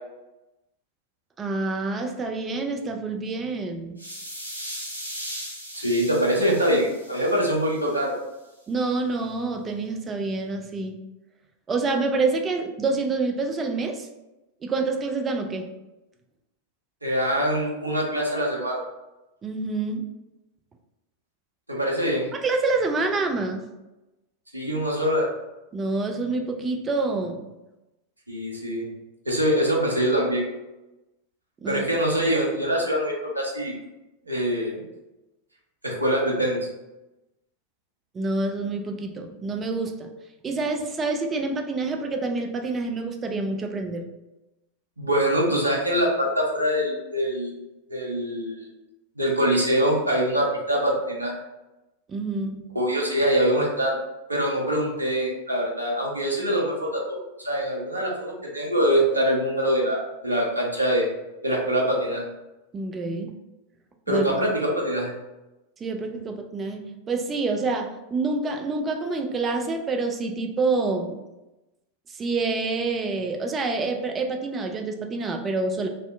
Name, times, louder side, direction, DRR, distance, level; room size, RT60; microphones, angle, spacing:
voice 1, 1.4-4.0 8.7-11.0 11.7-14.1 14.6-15.7 19.4-20.0 22.3-23.6 25.7-27.5 31.6-31.8 38.1-40.1 40.4-44.0 52.1-52.6 62.7-63.3 64.1-64.3 65.8-71.2 72.1-75.9, right 3 dB, 20° right, 4 dB, 0.3 m, -27 dB
sound 1, 4.0-8.0, equal, 90° left, 0.5 m, -38 dB
voice 2, 5.8-8.2 17.0-18.8 21.7-22.3 24.5-25.3 28.3-28.9 29.3-30.5 31.7-33.7 34.3-34.8 35.8-36.6 45.0-47.5 47.9-48.7 49.2-51.3 52.7-54.0 54.3-61.1 61.4-62.2 64.1-65.1, equal, 85° right, -2 dB, 0.5 m, -24 dB
2.6 x 2.1 x 2.4 m, 1.0 s
figure-of-eight pair, 90°, 0 cm